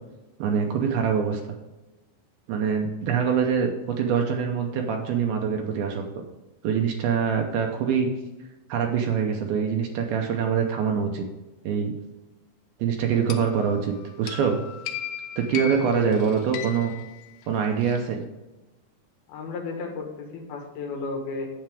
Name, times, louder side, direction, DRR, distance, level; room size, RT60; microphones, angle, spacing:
voice 1, 0.4-1.4 2.5-3.7 4.0-6.0 6.6-8.1 8.7-11.3 11.6-11.9 12.8-14.6 15.4-16.9 17.5-18.2, right 7 dB, 75° right, 3 dB, 2.4 m, -24 dB
sound 1, 13.3-18.0, left 9 dB, 85° left, 1.9 m, -37 dB
voice 2, 15.5-16.2 19.3-21.5, left 4 dB, 70° left, 2 dB, 2.9 m, -33 dB
9.0 x 8.0 x 3.4 m, 1.1 s
omnidirectional pair, 5.0 m